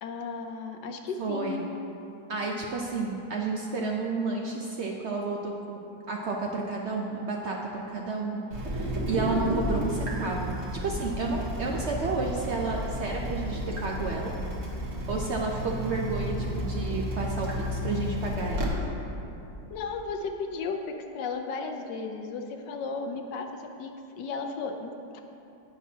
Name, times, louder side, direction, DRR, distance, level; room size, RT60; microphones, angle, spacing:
voice 1, 0.0-1.6 19.7-25.2, left 4 dB, 75° left, 5 dB, 1.2 m, -35 dB
voice 2, 1.2-1.7 2.3-5.8 6.1-8.4 8.7-10.6 10.8-14.3 15.1-18.7, right 3 dB, 85° right, -1 dB, 0.6 m, -31 dB
Water tap faucet / Drip, 8.5-18.7, equal, 50° right, 1.4 m, -32 dB
17.5 x 5.9 x 2.8 m, 2.8 s
omnidirectional pair, 2.0 m